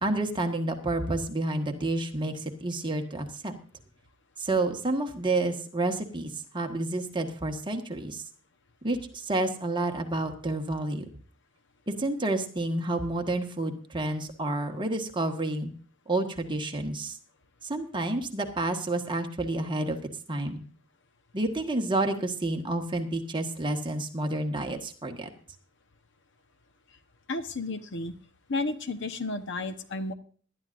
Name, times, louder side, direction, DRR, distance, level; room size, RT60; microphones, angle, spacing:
voice 1, 0.0-3.6 4.4-8.2 8.8-11.0 11.9-15.7 16.1-17.2 17.6-20.0 20.3-20.6 21.3-25.3, right 2 dB, 25° right, 4 dB, 1.5 m, -29 dB
voice 2, 27.3-28.1 28.5-30.1, left 2 dB, 60° left, 10 dB, 1.1 m, -32 dB
20.5 x 11.5 x 2.6 m, 0.43 s
head